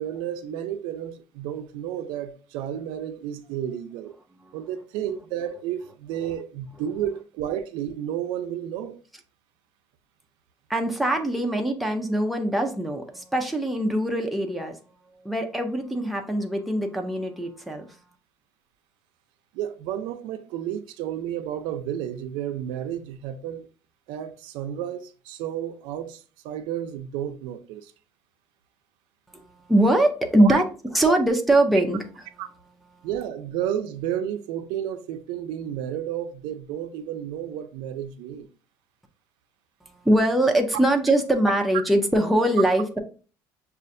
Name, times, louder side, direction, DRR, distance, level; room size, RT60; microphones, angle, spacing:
voice 1, 0.0-4.1 4.5-9.0 19.5-23.7 24.1-27.9 30.4-30.6 31.0-31.1 32.4-32.5 33.0-38.5, right 10 dB, 80° right, 0.5 m, -31 dB
voice 2, 10.7-14.8 15.2-17.9 29.3-29.4 29.7-30.7 30.9-32.0 40.0-43.0, right 1 dB, ahead, 0.4 m, -22 dB
6.3 x 2.4 x 2.5 m
cardioid pair, 175°, 8 cm